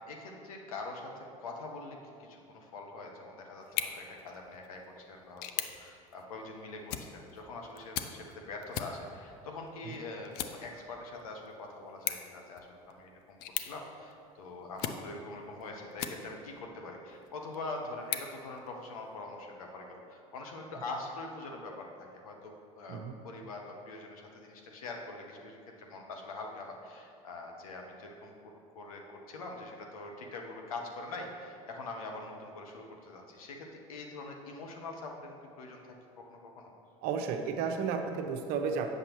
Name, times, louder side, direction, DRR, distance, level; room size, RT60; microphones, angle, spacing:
voice 1, 0.0-28.3 28.7-35.8 36.2-36.7, left 2 dB, 85° left, 1 dB, 0.9 m, -44 dB
sound 1, 3.6-16.6 17.1-19.2, left 10 dB, 60° left, 0.5 m, -42 dB
voice 2, 37.0-38.9, right 6 dB, 60° right, 5 dB, 0.7 m, -33 dB
8.0 x 6.5 x 3.0 m, 2.4 s
hypercardioid pair, 75°, 18 cm